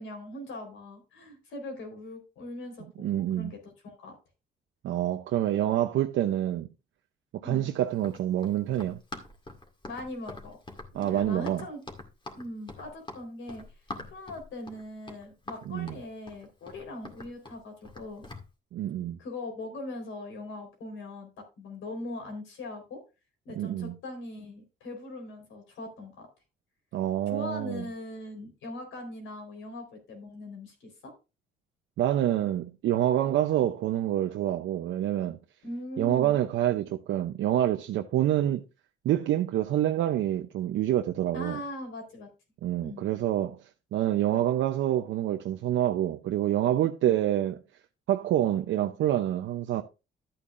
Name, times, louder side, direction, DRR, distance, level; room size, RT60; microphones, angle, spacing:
voice 1, 0.0-4.1 7.4-7.7 9.9-10.6 10.9-11.8 12.3-13.6 14.1-18.3 19.2-23.0 23.5-26.3 27.3-31.1 35.6-36.4 41.3-42.3 42.8-43.1 47.0-47.1, left 1 dB, 80° left, 4.1 m, -40 dB
voice 2, 3.0-3.5 4.8-6.7 7.4-9.0 10.9-11.6 15.7-16.0 18.7-19.2 23.6-23.9 26.9-27.8 32.0-35.4 36.0-38.6 39.0-41.6 42.6-43.6 43.9-47.6 48.1-49.8, right 12 dB, 75° right, 0.7 m, -27 dB
Run, 7.9-18.5, left 2 dB, 25° left, 2.1 m, -44 dB
12.0 x 8.6 x 2.5 m
cardioid pair, 90°, 20 cm